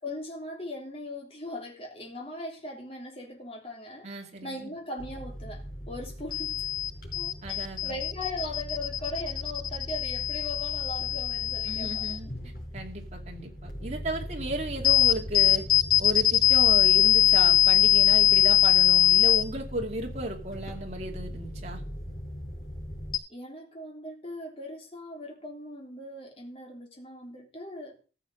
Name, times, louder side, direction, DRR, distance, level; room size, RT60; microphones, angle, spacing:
voice 1, 0.0-4.1 4.4-6.6 7.2-12.2 23.3-28.0, left 1 dB, 35° left, 0 dB, 3.4 m, -39 dB
voice 2, 4.0-4.7 7.4-8.0 11.7-15.7 16.0-21.8, right 1 dB, 40° right, 1 dB, 2.6 m, -35 dB
sound 1, 5.0-23.2, left 10 dB, 55° left, 5.3 m, -25 dB
14.5 x 6.9 x 6.7 m, 0.37 s
head